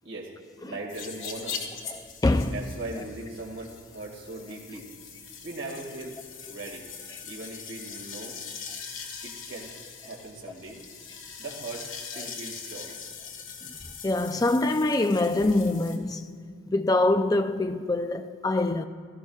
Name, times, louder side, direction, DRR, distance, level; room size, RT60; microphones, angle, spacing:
voice 1, 0.0-0.3 0.6-1.6 2.4-4.9 5.4-6.1 6.5-6.8 7.2-8.4 9.2-9.7 10.0-10.8 11.4-12.9, right 2 dB, 75° right, 2.0 m, -39 dB
sound 1, 0.9-16.0, left 6 dB, 85° left, 1.4 m, -42 dB
voice 2, 2.2-2.5 14.0-16.3 16.7-18.8, left 2 dB, 20° left, 0.4 m, -24 dB
16.5 x 14.0 x 2.4 m
head